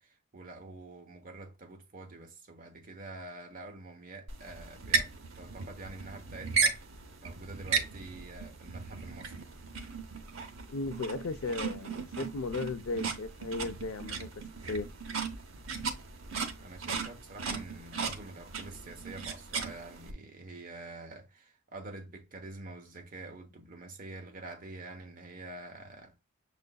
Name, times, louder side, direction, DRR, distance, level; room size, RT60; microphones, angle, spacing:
voice 1, 0.0-6.9 7.2-9.3 16.6-26.1, right 2 dB, 40° right, 0.9 m, -46 dB
sound 1, 4.3-20.1, right 5 dB, 65° right, 0.8 m, -36 dB
voice 2, 10.7-14.3 14.7-14.9, left 3 dB, 70° left, 0.5 m, -35 dB
6.5 x 2.5 x 2.3 m
head